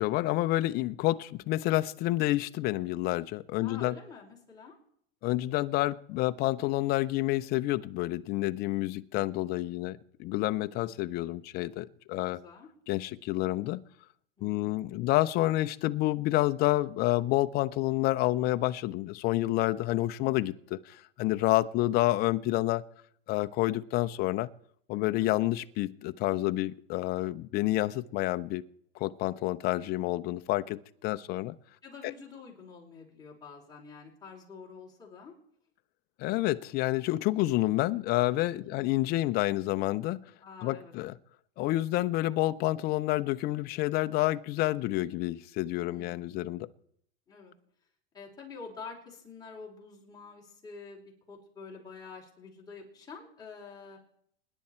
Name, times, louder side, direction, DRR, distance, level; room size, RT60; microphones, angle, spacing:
voice 1, 0.0-4.0 5.2-12.4 12.9-13.8 14.4-22.9 23.3-24.5 24.9-28.6 29.0-31.5 32.0-32.1 36.2-40.3 40.6-41.2 41.6-46.7, left 17 dB, 30° left, 11 dB, 0.6 m, -29 dB
voice 2, 3.6-4.8 10.5-11.0 12.3-12.7 14.4-14.8 25.2-25.4 31.8-35.3 38.6-39.0 40.4-40.9 45.9-46.4 47.3-47.5 48.1-51.0 51.3-54.0, left 5 dB, 10° left, -3 dB, 4.4 m, -47 dB
25.0 x 11.0 x 4.4 m, 0.67 s
supercardioid pair, 150°, 31 cm